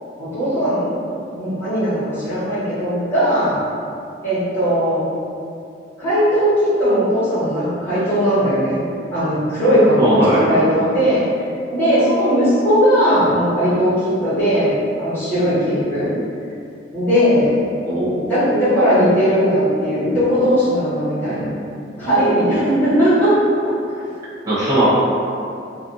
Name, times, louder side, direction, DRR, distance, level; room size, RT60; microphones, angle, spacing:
voice 1, 0.2-3.6 4.2-5.0 6.0-8.8 9.1-11.2 11.7-16.1 16.9-17.5 18.1-21.5 22.0-23.3 23.6-24.0, equal, 10° left, -15 dB, 1.1 m, -18 dB
voice 2, 10.0-10.5 17.9-18.1 24.5-24.9, right 1 dB, 20° right, -10 dB, 0.7 m, -17 dB
2.5 x 2.4 x 2.6 m, 2.5 s
head